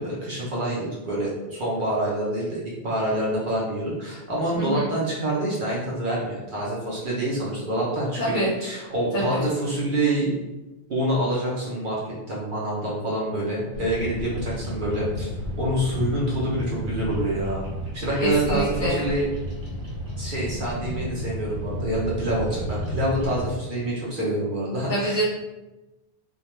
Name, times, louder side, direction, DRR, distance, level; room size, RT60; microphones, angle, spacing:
voice 1, 0.0-8.3 8.6-10.3 10.9-15.3 15.6-17.6 17.9-19.3 20.2-25.2, right 1 dB, 55° right, -5 dB, 0.7 m, -26 dB
voice 2, 4.5-4.9 8.2-8.5 9.1-9.5 18.2-19.1 24.9-25.2, right 1 dB, 55° left, -6 dB, 0.6 m, -25 dB
Bird vocalization bird call bird song, 13.7-23.6, equal, 75° right, 1.1 m, -32 dB
2.2 x 2.2 x 2.9 m, 1.0 s
omnidirectional pair, 1.2 m